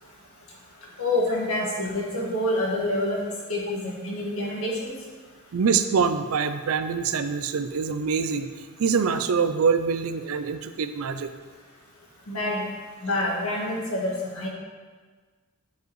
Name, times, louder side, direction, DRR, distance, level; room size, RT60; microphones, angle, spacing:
voice 1, 1.0-3.2 3.5-4.9 12.3-12.7 13.0-14.5, left 1 dB, 85° left, -3 dB, 1.7 m, -27 dB
voice 2, 5.5-8.5 8.8-11.3, right 5 dB, 80° right, 10 dB, 0.4 m, -24 dB
9.2 x 4.8 x 3.1 m, 1.4 s
head